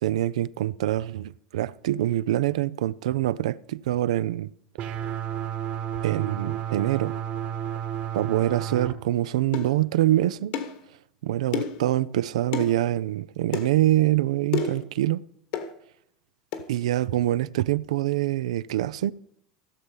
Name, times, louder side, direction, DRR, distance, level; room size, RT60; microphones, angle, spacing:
voice 1, 0.0-4.5 6.0-7.1 8.1-10.5 11.2-15.2 16.7-19.1, right 14 dB, 80° right, 0.4 m, -25 dB
sound 1, 4.8-8.9, right 9 dB, 50° right, 1.6 m, -31 dB
sound 2, 9.5-9.7 10.5-10.8 11.5-11.8 12.5-12.7 13.5-13.7 14.5-14.8 15.5-15.7 16.5-16.7, left 7 dB, 65° left, 1.7 m, -29 dB
16.0 x 6.7 x 5.4 m
hypercardioid pair, 95°, 3 cm